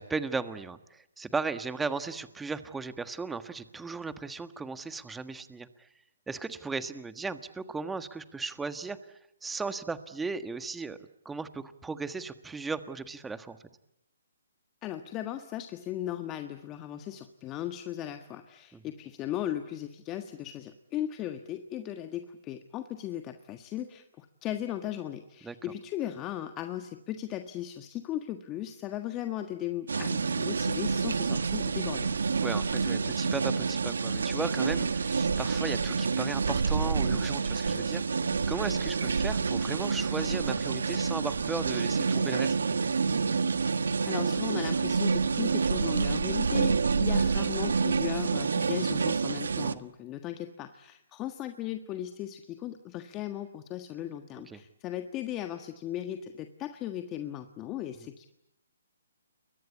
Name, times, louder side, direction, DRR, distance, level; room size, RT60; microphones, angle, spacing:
voice 1, 0.0-5.9 6.3-9.0 9.4-11.0 11.2-13.6 18.7-18.8 25.4-25.6 32.4-38.0 38.5-42.6 49.6-49.8 54.5-54.6, right 4 dB, 5° right, 11 dB, 1.5 m, -36 dB
voice 2, 14.8-32.1 44.1-58.3, left 12 dB, 20° left, 7 dB, 1.5 m, -37 dB
sound 1, 29.9-49.7, right 5 dB, 80° right, 1.5 m, -28 dB
sound 2, 34.2-41.7, right 8 dB, 50° right, 5.3 m, -51 dB
29.5 x 23.0 x 8.4 m, 0.81 s
hypercardioid pair, 150°, 0 cm